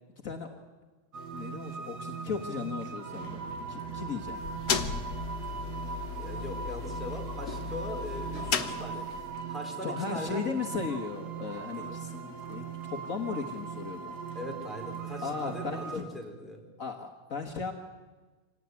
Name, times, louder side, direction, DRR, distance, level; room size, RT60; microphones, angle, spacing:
voice 1, 0.2-0.6 1.3-4.4 9.8-14.2 15.2-16.0 16.8-17.7, left 5 dB, 55° left, 4 dB, 1.8 m, -36 dB
sound 1, 1.1-16.0, right 6 dB, 80° right, 2.5 m, -39 dB
sound 2, 4.3-9.4, left 6 dB, 75° left, 1.9 m, -35 dB
voice 2, 5.8-9.2 9.5-10.4 11.9-12.0 12.8-12.9 14.3-16.7, left 1 dB, ahead, 0 dB, 4.7 m, -41 dB
25.5 x 18.5 x 9.6 m, 1.3 s
omnidirectional pair, 1.7 m